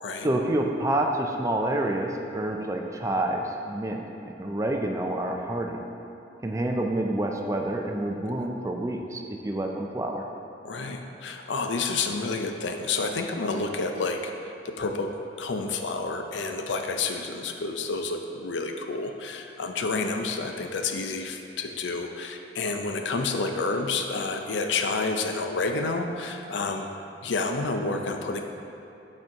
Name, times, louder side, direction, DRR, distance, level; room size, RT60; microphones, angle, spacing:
voice 1, 0.2-5.8 6.4-10.2, right 1 dB, 15° right, 2 dB, 0.4 m, -28 dB
voice 2, 10.6-15.1 15.4-26.9 27.2-28.4, left 3 dB, 90° left, 5 dB, 0.5 m, -29 dB
6.3 x 4.3 x 4.5 m, 2.9 s
head